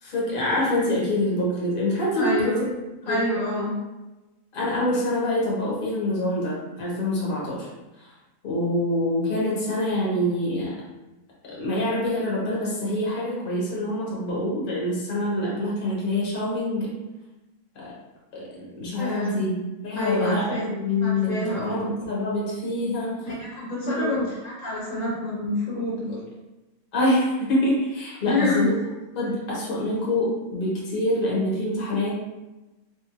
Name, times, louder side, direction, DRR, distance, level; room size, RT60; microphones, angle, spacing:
voice 1, 0.0-2.6 3.1-3.2 4.5-7.7 8.0-8.1 8.4-10.8 11.5-16.9 17.7-17.9 18.3-19.5 19.8-23.1 23.8-24.1 26.9-28.7 29.1-32.1, left 1 dB, 40° left, -6 dB, 1.0 m, -25 dB
voice 2, 2.1-2.6 3.0-3.7 19.0-19.4 20.0-20.7 21.0-21.9 23.3-26.2 28.2-28.7, left 2 dB, 65° left, -6 dB, 1.1 m, -27 dB
2.8 x 2.5 x 2.9 m, 1.1 s
omnidirectional pair, 1.6 m